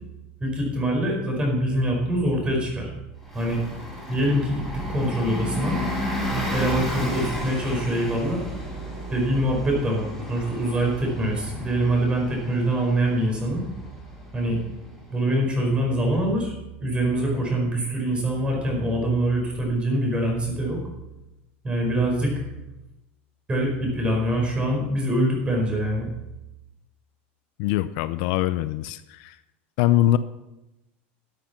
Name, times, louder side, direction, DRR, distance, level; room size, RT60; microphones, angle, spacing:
voice 1, 0.4-2.9 3.3-3.6 4.1-4.6 4.9-5.8 6.5-8.4 9.1-13.6 14.3-14.6 15.1-16.5 16.8-20.8 21.6-22.3 23.5-26.1, right 1 dB, 15° right, 0 dB, 5.0 m, -24 dB
Bus, 3.2-15.5, equal, ahead, 5.4 m, -33 dB
voice 2, 27.6-29.4 29.8-30.2, left 14 dB, 60° left, 14 dB, 0.6 m, -22 dB
13.5 x 7.9 x 6.0 m, 0.97 s
supercardioid pair, 125°, 6 cm